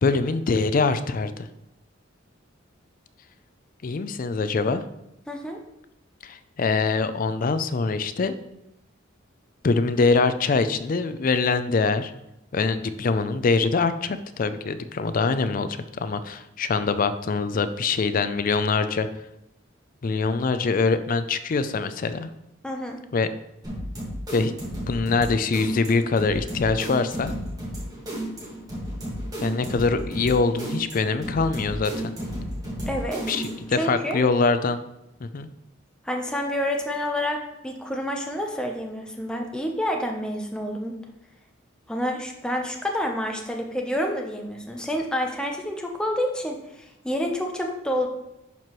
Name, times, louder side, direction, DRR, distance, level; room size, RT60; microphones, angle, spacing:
voice 1, 0.0-1.5 3.8-4.8 6.2-8.4 9.6-12.1 12.5-19.1 20.0-22.3 23.1-23.3 24.3-24.5 24.9-27.3 29.4-32.1 33.3-34.8 35.2-35.5, left 4 dB, 45° left, 12 dB, 0.4 m, -24 dB
voice 2, 5.3-5.6 22.6-23.0 32.9-33.2 33.8-34.2 36.0-41.0 41.9-48.1, equal, 5° left, 1 dB, 0.7 m, -28 dB
sound 1, 23.6-33.7, equal, 20° right, 1.8 m, -33 dB
11.0 x 4.5 x 3.1 m, 0.86 s
head